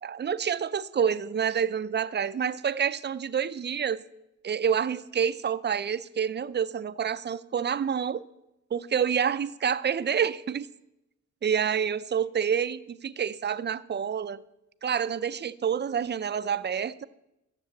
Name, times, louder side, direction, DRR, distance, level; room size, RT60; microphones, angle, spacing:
voice 1, 0.0-4.0 4.4-8.2 8.7-10.7 11.4-14.4 14.8-17.1, right 7 dB, 35° right, 14 dB, 0.5 m, -28 dB
12.5 x 6.9 x 8.2 m, 0.89 s
wide cardioid pair, 135°, 30 cm